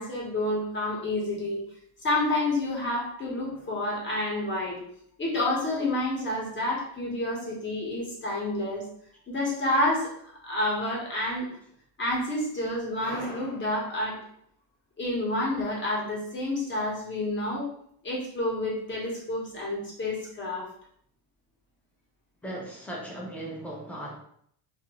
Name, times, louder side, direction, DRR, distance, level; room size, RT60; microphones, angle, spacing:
voice 1, 0.0-1.6 2.0-4.8 5.2-8.9 9.3-10.1 10.4-11.5 12.0-14.2 15.0-17.7 18.0-20.7, left 1 dB, 25° left, -4 dB, 1.0 m, -29 dB
voice 2, 22.4-24.1, right 1 dB, 5° left, -3 dB, 0.6 m, -37 dB
2.6 x 2.5 x 2.9 m, 0.67 s
cardioid pair, 135°, 45 cm